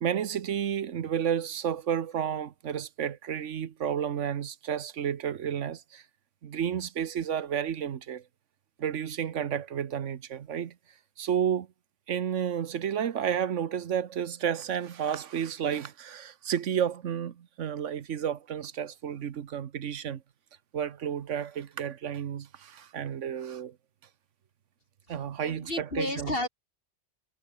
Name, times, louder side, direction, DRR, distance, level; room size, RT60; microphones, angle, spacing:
voice 1, 0.0-6.0 6.4-8.2 8.8-10.7 11.2-11.7 12.1-20.2 20.7-23.7 25.1-26.4, right 9 dB, 85° right, 1.3 m, -31 dB
voice 2, 25.4-26.5, left 1 dB, 50° left, 5.9 m, -32 dB
omnidirectional pair, 1.2 m